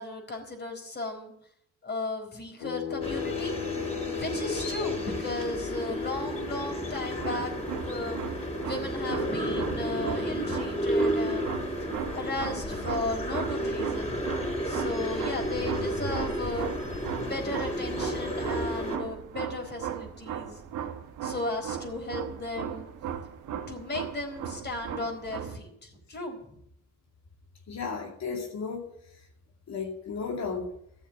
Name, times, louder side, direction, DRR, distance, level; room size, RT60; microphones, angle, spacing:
voice 1, 0.0-1.3 1.8-3.6 4.0-7.5 7.8-8.2 8.6-11.6 12.1-14.1 14.6-16.7 17.2-20.6 21.2-22.9 23.7-26.6, left 2 dB, 35° left, 3 dB, 4.3 m, -35 dB
sound 1, 2.6-15.7, left 7 dB, 85° left, 1.8 m, -40 dB
sound 2, 3.0-19.0, equal, 20° left, 4.9 m, -32 dB
sound 3, 6.9-25.6, right 8 dB, 85° right, 1.5 m, -37 dB
voice 2, 27.7-28.9 29.7-30.8, left 5 dB, 65° left, 1 dB, 2.6 m, -34 dB
14.0 x 7.2 x 8.6 m, 0.74 s
cardioid pair, 90°, 30 cm